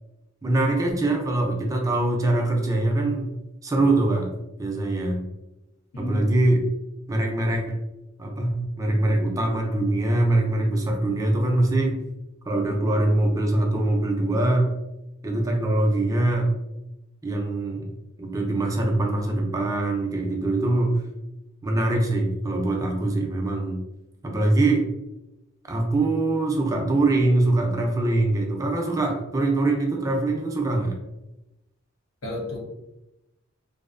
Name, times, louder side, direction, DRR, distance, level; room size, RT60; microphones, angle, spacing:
voice 1, 0.4-3.3 3.6-4.3 4.6-5.2 6.0-6.6 7.1-7.8 8.2-12.0 12.5-14.7 15.2-16.6 17.2-17.9 18.2-21.0 21.6-23.8 24.2-24.9 25.7-31.0, right 2 dB, 15° right, 1 dB, 0.4 m, -23 dB
voice 2, 5.9-6.5 32.2-32.6, equal, 80° left, -3 dB, 0.6 m, -31 dB
2.5 x 2.0 x 2.4 m, 0.94 s
head